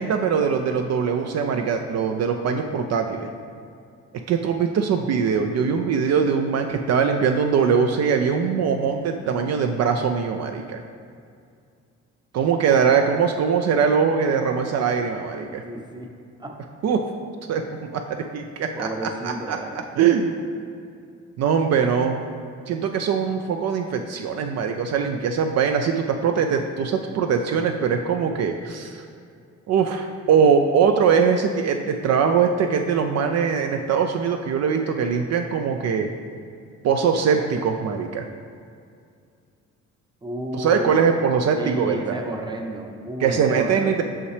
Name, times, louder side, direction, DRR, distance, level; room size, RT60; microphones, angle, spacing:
voice 1, 0.0-3.3 4.3-10.8 12.3-15.6 16.8-17.0 17.5-20.4 21.4-22.2 22.7-29.0 29.7-36.1 36.8-38.2 40.5-42.2 43.2-44.0, right 6 dB, 60° right, 5 dB, 0.4 m, -22 dB
voice 2, 15.6-16.1 16.4-16.5 18.7-19.9 40.2-40.9 41.6-43.9, right 1 dB, 15° right, 2 dB, 0.7 m, -31 dB
5.5 x 5.5 x 3.3 m, 2.3 s
cardioid pair, 90°, 30 cm